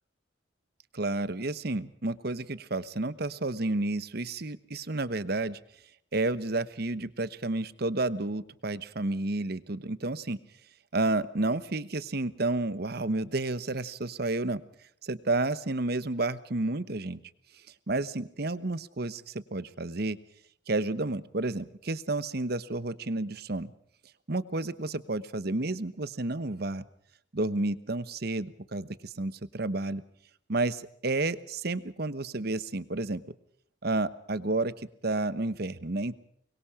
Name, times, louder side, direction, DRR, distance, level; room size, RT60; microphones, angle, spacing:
voice 1, 0.9-5.6 6.1-10.4 10.9-14.6 15.0-17.2 17.9-20.2 20.7-23.7 24.3-26.8 27.3-30.0 30.5-33.2 33.8-36.1, right 2 dB, 55° right, 15 dB, 1.1 m, -31 dB
24.5 x 22.5 x 5.0 m, 0.64 s
head